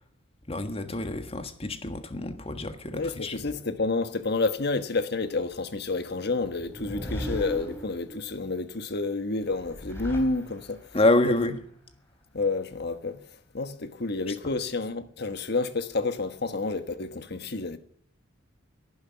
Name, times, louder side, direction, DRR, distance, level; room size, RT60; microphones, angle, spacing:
voice 1, 0.5-3.4 10.9-11.6 14.3-14.4, left 2 dB, 30° left, 1.5 m, -27 dB
voice 2, 2.9-11.0 12.3-13.2 13.5-17.8, left 3 dB, 55° left, 1.3 m, -29 dB
sound 1, 6.4-8.4 9.4-10.9, left 1 dB, 10° left, 3.4 m, -37 dB
12.0 x 11.0 x 9.6 m
head